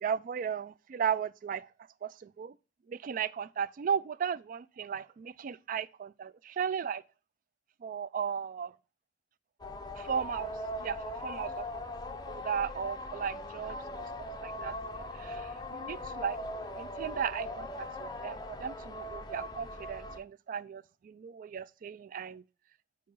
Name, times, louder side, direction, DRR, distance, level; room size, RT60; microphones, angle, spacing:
voice 1, 0.0-1.7 2.0-2.5 2.9-7.0 7.8-8.7 10.0-10.5 10.8-11.8 12.1-14.8 15.1-16.4 16.7-22.4, right 7 dB, 50° right, 0.3 m, -36 dB
sound 1, 9.6-20.2, left 1 dB, 25° left, 0.5 m, -40 dB
8.4 x 2.8 x 5.3 m
head